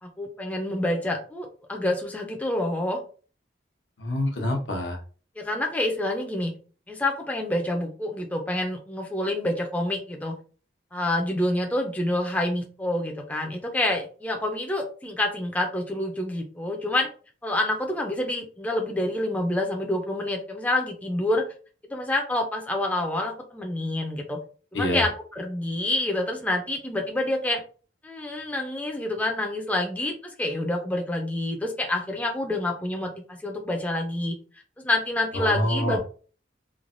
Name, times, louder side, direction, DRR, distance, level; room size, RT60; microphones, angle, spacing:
voice 1, 0.0-3.0 5.4-6.5 6.9-10.4 10.9-17.1 17.4-21.4 21.9-24.4 24.7-27.6 28.0-34.4 34.8-36.0, left 1 dB, 10° left, 2 dB, 0.3 m, -27 dB
voice 2, 4.0-5.0 24.7-25.0 35.3-36.0, left 1 dB, 90° left, 2 dB, 0.8 m, -26 dB
3.1 x 2.1 x 2.5 m, 0.39 s
head